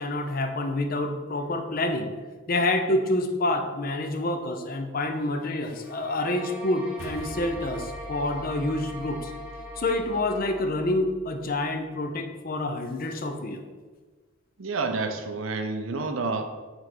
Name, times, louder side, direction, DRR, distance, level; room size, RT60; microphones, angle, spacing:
voice 1, 0.0-2.1 2.5-9.3 9.8-13.6, left 2 dB, 45° left, 6 dB, 0.6 m, -27 dB
sound 1, 5.8-10.7, equal, 5° right, 1.0 m, -41 dB
sound 2, 7.0-11.5, left 1 dB, 85° left, 0.7 m, -44 dB
voice 2, 14.6-16.4, right 3 dB, 80° right, 5 dB, 0.7 m, -29 dB
5.9 x 3.4 x 5.3 m, 1.3 s
head